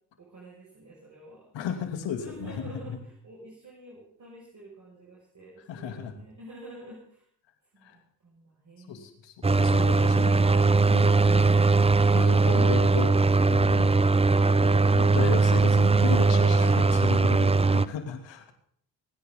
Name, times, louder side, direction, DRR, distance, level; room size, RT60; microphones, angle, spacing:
voice 1, 0.2-1.5 2.2-7.2 7.7-9.1, right 1 dB, 40° right, -4 dB, 6.2 m, -48 dB
voice 2, 1.5-3.0 5.7-6.1 7.8-8.0 8.9-11.8 12.1-13.1 13.4-14.0 14.7-18.5, left 7 dB, 70° left, 5 dB, 2.9 m, -35 dB
sound 1, 9.4-17.8, right 3 dB, 15° right, 0.7 m, -20 dB
26.5 x 9.8 x 3.9 m, 0.64 s
supercardioid pair, 60°, 45 cm